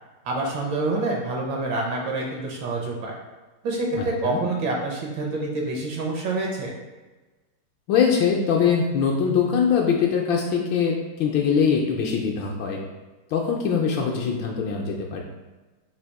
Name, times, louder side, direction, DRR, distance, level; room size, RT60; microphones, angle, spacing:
voice 1, 0.2-3.1 3.6-6.7, right 2 dB, 70° right, -1 dB, 1.3 m, -27 dB
voice 2, 3.9-4.4 7.9-12.8 13.3-15.2, left 6 dB, 75° left, -1 dB, 1.2 m, -22 dB
4.0 x 2.8 x 4.5 m, 1.2 s
omnidirectional pair, 2.4 m